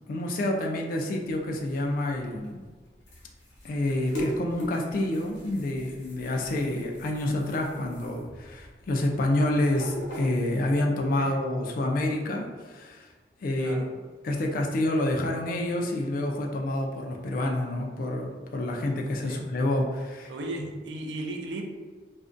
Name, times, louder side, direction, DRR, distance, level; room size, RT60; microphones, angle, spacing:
voice 1, 0.1-2.6 3.6-13.1 13.4-13.8 14.2-20.3 20.6-20.8, left 1 dB, 50° left, 1 dB, 0.3 m, -28 dB
sound 1, 1.3-10.8, equal, 80° left, 0.8 m, -41 dB
voice 2, 20.3-21.6, right 2 dB, 75° right, 3 dB, 0.4 m, -36 dB
2.4 x 2.1 x 2.5 m, 1.4 s
head